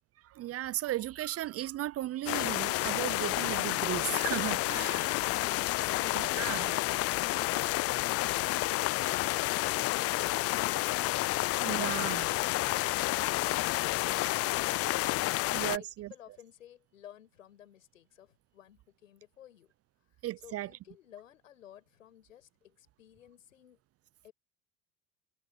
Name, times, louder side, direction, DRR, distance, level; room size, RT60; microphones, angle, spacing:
voice 1, 0.2-5.1 6.1-6.7 11.6-12.3 15.5-16.1 20.2-20.7, right 14 dB, 40° right, 0.6 m, -35 dB
sound 1, 2.3-15.8, left 19 dB, 40° left, 0.4 m, -30 dB
voice 2, 12.0-19.7 20.1-23.8 24.2-24.3, left 11 dB, 85° left, 7.7 m, -55 dB
hypercardioid pair, 70°, 38 cm